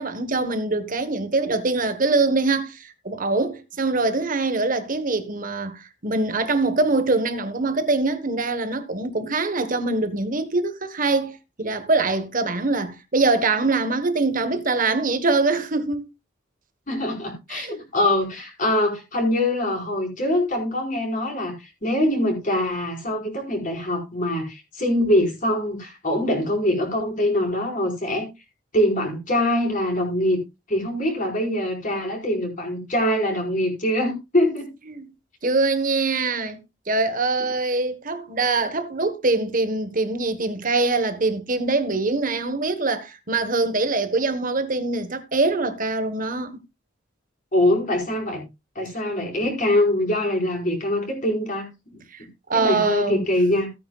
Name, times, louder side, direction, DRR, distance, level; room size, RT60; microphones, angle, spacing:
voice 1, 0.0-16.1 17.5-17.7 34.9-35.1 35.4-36.6 36.9-46.6 52.5-53.2, right 3 dB, 45° right, 1.4 m, -23 dB
voice 2, 16.9-28.3 28.7-30.4 30.7-34.7 47.5-48.4 48.8-52.0 52.5-53.7, left 1 dB, 45° left, 5.0 m, -23 dB
16.0 x 9.2 x 2.4 m
head